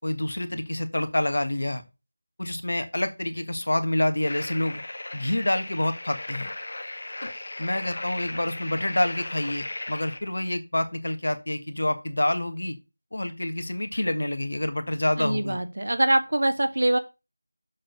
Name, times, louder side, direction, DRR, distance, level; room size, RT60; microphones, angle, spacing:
voice 1, 0.0-1.8 2.4-4.8 5.1-6.5 7.2-7.3 7.6-12.8 13.1-15.6, left 1 dB, 65° left, 8 dB, 1.7 m, -27 dB
sound 1, 4.3-10.2, left 2 dB, 45° left, 1.1 m, -37 dB
voice 2, 15.2-17.0, right 1 dB, 60° right, 8 dB, 1.6 m, -23 dB
7.5 x 4.5 x 6.7 m, 0.27 s
figure-of-eight pair, 175°, 0 cm